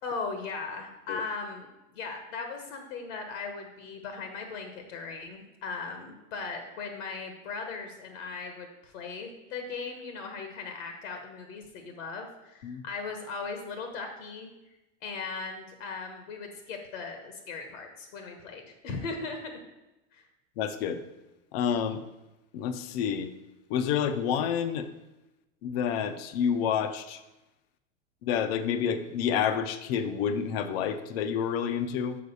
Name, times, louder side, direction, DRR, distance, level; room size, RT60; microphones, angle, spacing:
voice 1, 0.0-14.5 15.0-19.5 20.1-20.2, left 4 dB, 70° left, 5 dB, 1.4 m, -38 dB
voice 2, 20.6-21.0 21.5-22.0 22.5-23.3 23.7-24.9 25.6-27.2 28.2-32.2, left 8 dB, 50° left, 10 dB, 0.7 m, -29 dB
6.7 x 4.5 x 6.8 m, 0.99 s
supercardioid pair, 165°, 40 cm